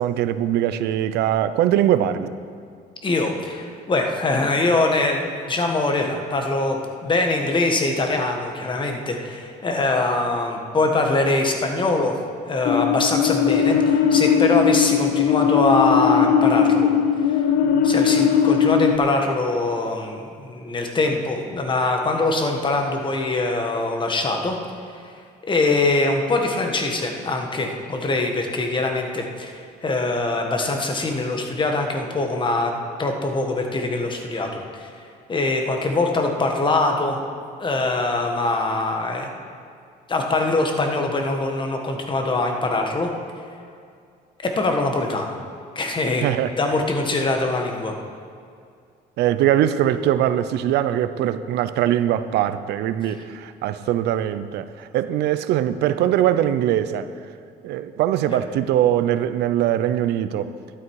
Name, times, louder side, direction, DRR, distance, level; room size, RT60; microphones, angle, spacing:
voice 1, 0.0-2.3 46.2-46.5 49.2-57.1 57.6-60.5, right 11 dB, 80° right, 12 dB, 0.6 m, -21 dB
voice 2, 3.0-12.1 12.5-16.9 17.3-17.4 17.8-24.6 25.4-32.7 33.0-37.2 37.6-39.3 40.1-43.1 44.4-45.3 45.7-46.2 46.6-47.9 58.3-58.4, left 2 dB, 30° left, 3 dB, 1.6 m, -23 dB
sound 1, 12.7-19.0, left 7 dB, 80° left, 0.8 m, -19 dB
12.0 x 11.0 x 4.8 m, 2.3 s
cardioid pair, 110°, 17 cm